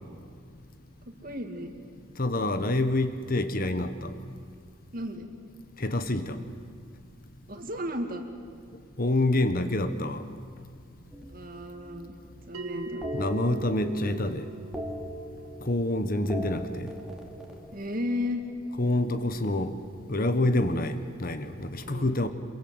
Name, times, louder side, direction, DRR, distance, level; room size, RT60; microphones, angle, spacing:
voice 1, 1.1-1.7 4.9-5.3 7.5-8.3 11.3-12.2 12.5-13.1 17.7-18.4 21.8-22.2, left 1 dB, 40° right, 5 dB, 2.5 m, -34 dB
voice 2, 2.2-4.1 5.8-6.4 9.0-10.2 13.1-14.5 15.6-16.9 18.8-19.8 20.1-22.3, left 1 dB, 40° left, 9 dB, 1.3 m, -27 dB
sound 1, 11.1-12.4 13.0-14.2 14.4-15.9 16.2-18.5 19.7-21.5, equal, ahead, 2.7 m, -41 dB
Bell, 12.5-17.6, right 2 dB, 80° right, 1.4 m, -43 dB
27.5 x 23.0 x 8.0 m, 2.3 s
head